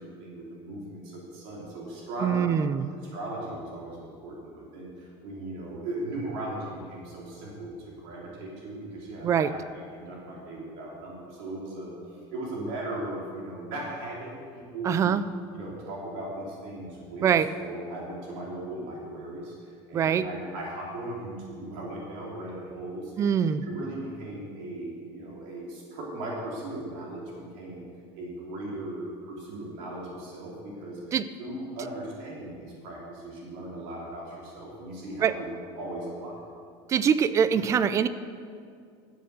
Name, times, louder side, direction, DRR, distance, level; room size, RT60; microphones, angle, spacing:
voice 1, 0.0-2.5 3.0-9.6 9.9-15.2 15.5-17.2 17.5-23.3 23.6-27.2 27.5-27.8 28.1-35.5 35.8-36.3, right 1 dB, 70° right, -4 dB, 3.2 m, -38 dB
voice 2, 2.2-2.9 9.2-9.5 14.8-15.2 17.2-17.5 19.9-20.3 23.2-23.6 31.1-31.3 35.2-35.3 36.9-38.1, right 8 dB, 25° right, 14 dB, 0.4 m, -23 dB
13.0 x 7.8 x 6.7 m, 2.3 s
cardioid pair, 160°, 13 cm